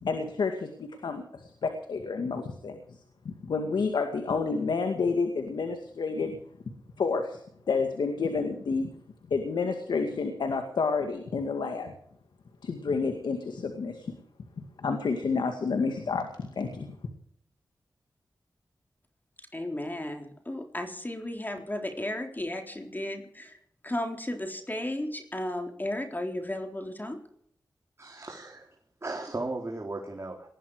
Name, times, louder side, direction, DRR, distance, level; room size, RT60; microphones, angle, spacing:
voice 1, 0.0-3.0 3.3-6.4 7.0-7.4 7.7-8.9 9.3-11.9 12.6-14.2 14.6-17.0, left 4 dB, 90° left, 6 dB, 2.1 m, -30 dB
voice 2, 19.5-23.2 23.8-27.2, left 1 dB, 25° left, 4 dB, 3.9 m, -34 dB
voice 3, 28.0-28.7 29.0-30.5, right 2 dB, 40° right, 0 dB, 4.0 m, -36 dB
20.0 x 13.5 x 4.9 m, 0.66 s
cardioid pair, 45°, 7 cm